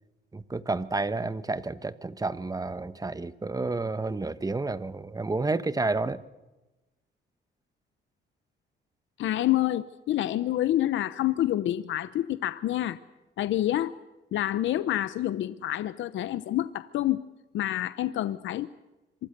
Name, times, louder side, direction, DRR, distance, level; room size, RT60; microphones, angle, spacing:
voice 1, 0.3-6.2, right 3 dB, 20° right, 13 dB, 1.2 m, -30 dB
voice 2, 9.2-13.0 13.4-13.9 14.3-17.3 17.5-18.7, left 13 dB, 75° left, 14 dB, 0.8 m, -27 dB
26.0 x 24.0 x 6.7 m, 1.1 s
cardioid pair, 90°, 20 cm